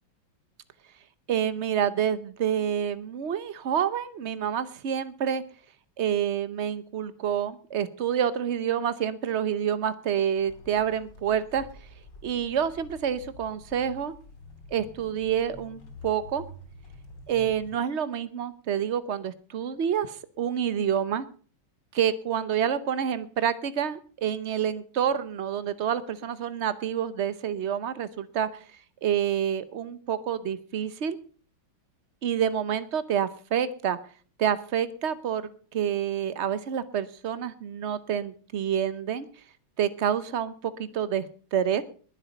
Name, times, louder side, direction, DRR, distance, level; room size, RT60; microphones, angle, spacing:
voice 1, 1.3-5.4 6.0-11.7 12.2-14.1 14.7-16.4 17.3-21.3 21.9-28.5 29.0-31.2 32.2-34.0 34.4-35.4 35.7-39.3 39.8-41.8, right 9 dB, 75° right, 15 dB, 0.6 m, -28 dB
sound 1, 10.4-17.8, left 1 dB, 55° left, 4.0 m, -48 dB
21.0 x 8.0 x 5.3 m, 0.42 s
omnidirectional pair, 2.3 m